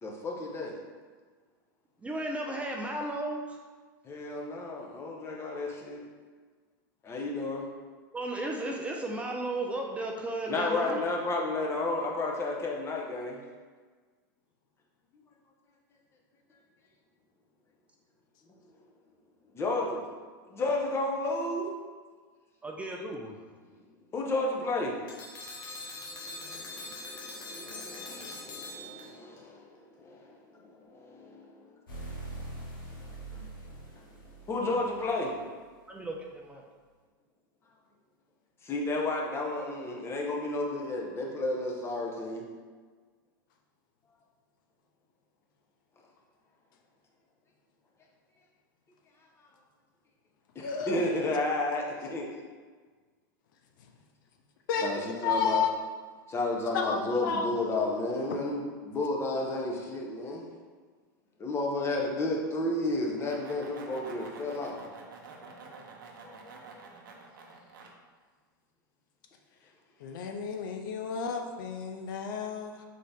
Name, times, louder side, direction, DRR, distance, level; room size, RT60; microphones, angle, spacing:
voice 1, 0.0-0.7 4.0-6.0 7.0-7.6 10.5-13.4 19.5-20.0 20.5-21.7 24.1-25.0 26.2-31.6 33.3-33.4 34.5-35.3 38.6-42.5 50.5-52.3 54.8-55.6 56.3-60.5 61.4-64.8 66.2-66.8, left 2 dB, 25° left, -1 dB, 1.0 m, -32 dB
voice 2, 2.0-3.6 8.1-11.0 22.6-23.3 35.9-36.6, right 1 dB, 10° right, 0 dB, 0.4 m, -34 dB
sound 1, 25.1-29.4, left 2 dB, 45° left, 1.1 m, -42 dB
sound 2, 31.9-35.4, right 2 dB, 90° left, 1.2 m, -43 dB
voice 3, 50.6-51.1 54.7-55.7 56.7-57.5 70.0-72.8, left 6 dB, 70° left, 4 dB, 0.5 m, -31 dB
sound 3, 63.0-67.9, right 4 dB, 80° right, 0.8 m, -48 dB
3.8 x 3.8 x 3.5 m, 1.5 s
hypercardioid pair, 115°, 11 cm